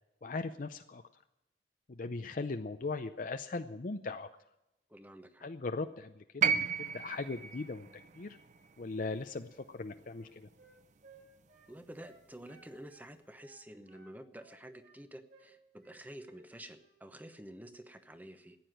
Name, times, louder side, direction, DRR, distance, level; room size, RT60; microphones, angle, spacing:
voice 1, 0.2-1.0 1.9-4.3 5.4-8.4 8.8-10.5, left 3 dB, 45° left, 7 dB, 0.6 m, -39 dB
voice 2, 4.9-5.5 11.7-18.6, right 1 dB, 10° right, 9 dB, 0.9 m, -50 dB
sound 1, 6.4-10.6 11.8-11.9, right 6 dB, 40° right, 0.6 m, -35 dB
Wind instrument woodwind instrument, 9.6-13.1 13.4-15.0 15.3-15.5 15.8-16.5 16.7-17.0, right 3 dB, 60° right, 7.2 m, -62 dB
14.5 x 9.7 x 9.2 m, 0.91 s
head